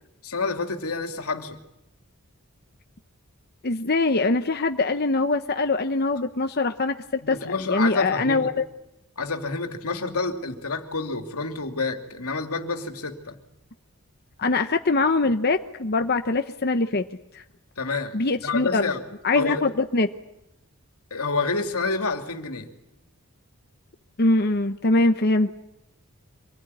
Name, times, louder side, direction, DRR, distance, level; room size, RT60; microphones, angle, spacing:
voice 1, 0.2-1.6 7.2-8.5 9.2-13.4 17.8-18.2 18.4-19.0 19.3-19.6 21.1-22.7, left 4 dB, 85° left, 5 dB, 2.7 m, -28 dB
voice 2, 3.6-8.5 14.4-17.0 17.3-17.4 18.1-18.9 19.2-20.1 24.2-25.5, left 3 dB, 45° left, 6 dB, 0.9 m, -23 dB
26.0 x 20.0 x 9.8 m, 0.87 s
head